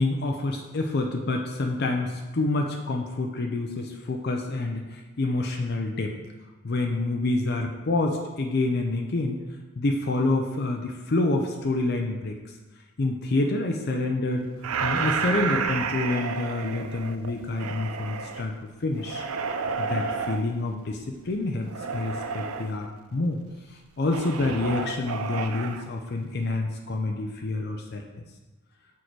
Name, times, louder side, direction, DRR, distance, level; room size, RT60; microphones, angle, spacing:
voice 1, 0.0-6.1 6.6-9.4 9.8-12.4 13.0-14.5 14.8-18.5 18.8-19.3 19.8-23.4 23.7-28.1, left 2 dB, 50° left, 2 dB, 0.5 m, -27 dB
sound 1, 14.6-18.4 19.0-20.4 21.7-22.7 24.1-25.8, right 5 dB, 85° right, 0.5 m, -31 dB
6.4 x 4.8 x 4.6 m, 1.2 s
head